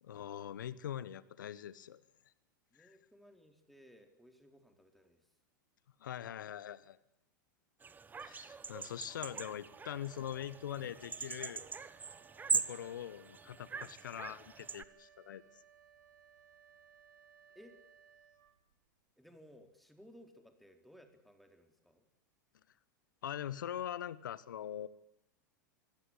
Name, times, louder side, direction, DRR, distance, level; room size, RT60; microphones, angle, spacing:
voice 1, 0.0-2.0 2.8-3.0 6.0-7.0 8.2-11.6 12.5-15.4 23.2-24.9, left 10 dB, 75° left, 17 dB, 1.3 m, -43 dB
voice 2, 2.7-5.3 12.8-12.9 17.5-17.8 19.2-22.1, equal, ahead, 5 dB, 3.9 m, -60 dB
sound 1, 7.8-14.8, right 5 dB, 15° right, 1.2 m, -41 dB
Wind instrument woodwind instrument, 9.5-19.0, right 8 dB, 70° right, 3.2 m, -64 dB
24.5 x 16.5 x 9.8 m, 0.84 s
hypercardioid pair, 95°, 10 cm